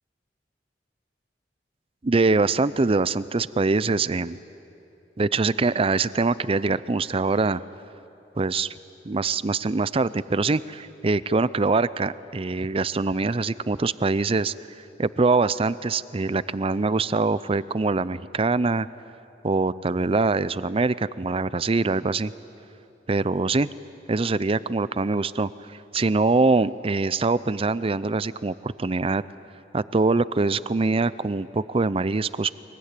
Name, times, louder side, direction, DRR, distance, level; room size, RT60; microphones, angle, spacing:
voice 1, 2.0-4.4 5.2-7.6 8.4-8.7 9.0-14.5 15.0-18.9 19.4-22.3 23.1-23.7 24.1-29.2 29.7-32.5, right 3 dB, 30° right, 17 dB, 0.5 m, -23 dB
23.0 x 22.5 x 9.7 m, 2.9 s
head